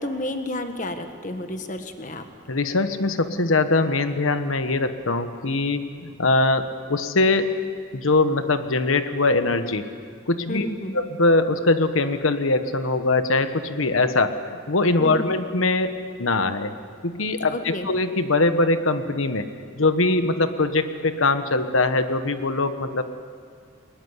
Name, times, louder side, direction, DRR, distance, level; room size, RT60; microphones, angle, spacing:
voice 1, 0.0-2.2 10.5-11.0 15.0-15.3 17.5-17.9, left 1 dB, 40° left, 7 dB, 1.5 m, -31 dB
voice 2, 2.5-7.5 7.9-9.9 10.3-10.7 10.9-16.7 17.0-19.5 19.8-23.0, left 2 dB, 85° left, 9 dB, 1.2 m, -22 dB
22.5 x 20.0 x 9.6 m, 2.2 s
head